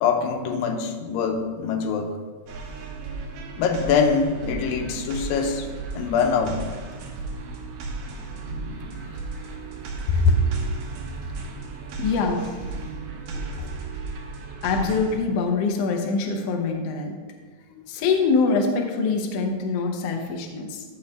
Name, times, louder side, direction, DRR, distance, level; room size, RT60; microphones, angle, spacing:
voice 1, 0.0-2.1 3.6-5.7 6.0-6.6 8.1-8.8 10.1-10.4 13.3-13.7, left 5 dB, 90° left, 5 dB, 2.5 m, -24 dB
sound 1, 2.5-15.2, right 3 dB, 75° right, 2.6 m, -35 dB
voice 2, 12.0-12.5 14.6-17.1 17.9-20.8, left 4 dB, 70° left, 3 dB, 1.5 m, -24 dB
13.5 x 5.4 x 3.5 m, 1.4 s
omnidirectional pair, 3.9 m